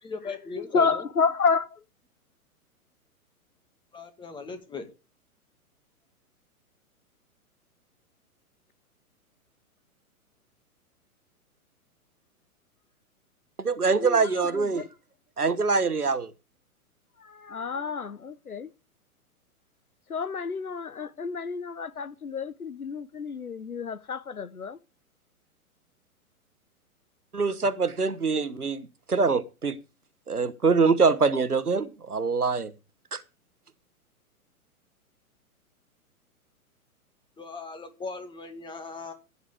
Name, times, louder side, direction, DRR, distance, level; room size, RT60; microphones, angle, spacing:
voice 1, 0.0-1.1 3.9-4.9 37.4-39.1, left 4 dB, 10° left, 2.0 m, -38 dB
voice 2, 0.7-1.7 14.0-14.5 14.7-14.8 17.4-18.7 20.1-24.8, left 5 dB, 75° left, 1.1 m, -29 dB
voice 3, 13.6-14.8 15.4-16.3 27.3-29.8 30.3-32.7 33.1-33.2, right 4 dB, 80° right, 1.4 m, -24 dB
15.5 x 9.9 x 3.5 m
figure-of-eight pair, 115°, 44 cm